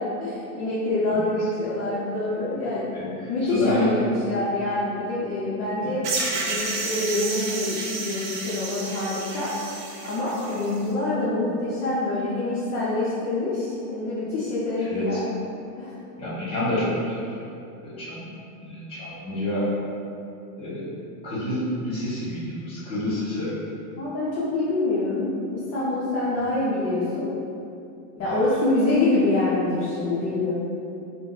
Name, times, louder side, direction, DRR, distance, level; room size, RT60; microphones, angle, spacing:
voice 1, 0.0-3.0 3.3-9.6 10.0-15.3 15.7-15.9 24.0-27.4 28.2-30.5, left 2 dB, 30° left, -9 dB, 0.4 m, -26 dB
voice 2, 2.9-4.1 5.8-5.9 14.8-15.2 16.2-17.2 17.8-18.3 18.6-19.7 20.6-20.9 21.2-23.5, left 1 dB, 10° left, -9 dB, 0.9 m, -28 dB
sound 1, 6.0-10.8, right 3 dB, 40° right, 0.4 m, -31 dB
2.6 x 2.1 x 3.8 m, 2.7 s
supercardioid pair, 135°, 48 cm